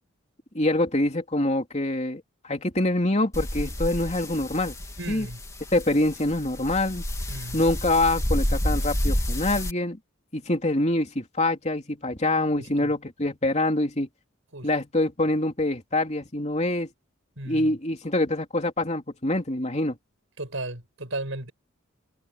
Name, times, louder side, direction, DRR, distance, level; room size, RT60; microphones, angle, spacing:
voice 1, 0.5-4.7 5.1-5.3 5.7-7.0 7.5-10.0 10.3-14.1 14.6-16.9 17.5-20.0, left 1 dB, 35° left, 3.1 m, -25 dB
sound 1, 3.3-9.7, equal, 15° left, 2.4 m, -29 dB
voice 2, 5.0-5.4 7.3-7.6 12.5-12.9 14.5-14.7 17.4-17.7 20.4-21.5, right 2 dB, 70° right, 6.5 m, -35 dB
head